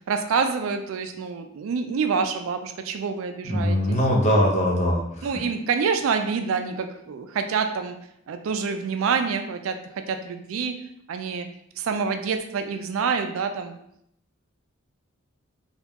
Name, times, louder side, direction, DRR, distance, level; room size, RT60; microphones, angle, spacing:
voice 1, 0.1-3.8 5.2-8.0 8.3-9.8 10.1-10.7 11.1-11.5 11.8-13.8, right 5 dB, 80° right, 7 dB, 0.4 m, -27 dB
voice 2, 3.4-5.3, equal, 35° left, -1 dB, 0.6 m, -21 dB
2.9 x 2.3 x 3.5 m, 0.74 s
head